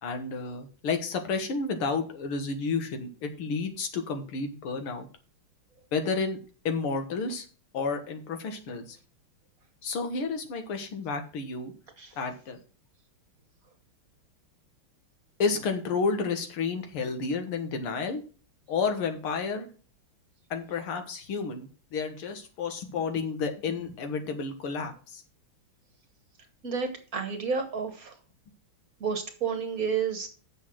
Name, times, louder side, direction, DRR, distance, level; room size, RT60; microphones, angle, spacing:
voice 1, 0.0-5.1 5.9-6.4 6.6-7.5 7.7-9.0 9.8-11.7 12.2-12.6 15.4-18.2 18.7-19.7 20.5-25.2, left 4 dB, 85° left, 6 dB, 2.3 m, -31 dB
voice 2, 26.6-28.1 29.0-30.3, right 6 dB, 45° right, 6 dB, 1.6 m, -30 dB
8.1 x 6.8 x 6.2 m, 0.38 s
omnidirectional pair, 2.3 m